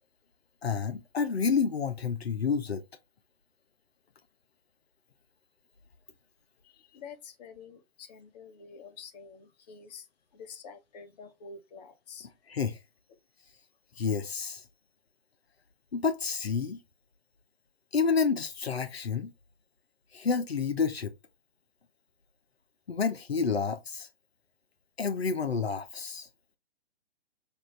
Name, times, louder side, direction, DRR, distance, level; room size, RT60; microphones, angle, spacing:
voice 1, 0.6-2.8 12.5-12.8 14.0-14.6 15.9-16.8 17.9-19.3 20.1-21.1 22.9-24.1 25.0-26.3, left 5 dB, 80° left, 0.8 m, -29 dB
voice 2, 6.6-10.1 10.3-12.3, left 5 dB, 40° left, 1.2 m, -48 dB
6.2 x 2.5 x 3.2 m
figure-of-eight pair, 125°, 30 cm